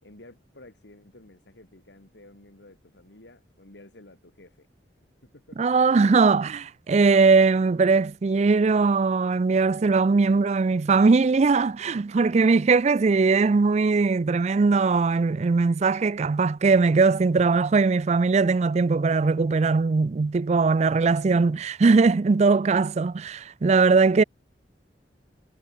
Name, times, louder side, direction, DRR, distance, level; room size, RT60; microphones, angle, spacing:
voice 1, 0.0-4.7 5.2-5.7 19.1-19.6 19.9-20.2, left 1 dB, 80° left, 2.9 m, -51 dB
voice 2, 5.6-24.2, right 4 dB, 40° right, 0.4 m, -20 dB
head